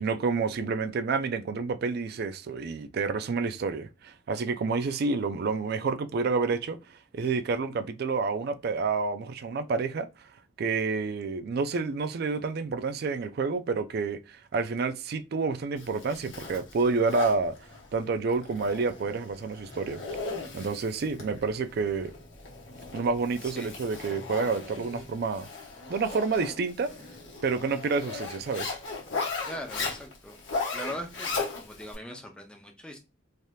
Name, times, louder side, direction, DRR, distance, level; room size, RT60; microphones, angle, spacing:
voice 1, 0.0-10.1 10.6-17.6 17.9-20.0 20.5-22.1 22.9-25.5 25.9-26.9 27.4-28.7, right 4 dB, 50° right, 0.3 m, -29 dB
Zipper (clothing), 15.8-31.9, left 4 dB, 65° left, 1.2 m, -37 dB
voice 2, 23.4-23.7 29.5-30.4 30.7-31.3 31.6-33.0, equal, 5° left, 0.6 m, -40 dB
3.3 x 2.8 x 2.2 m
head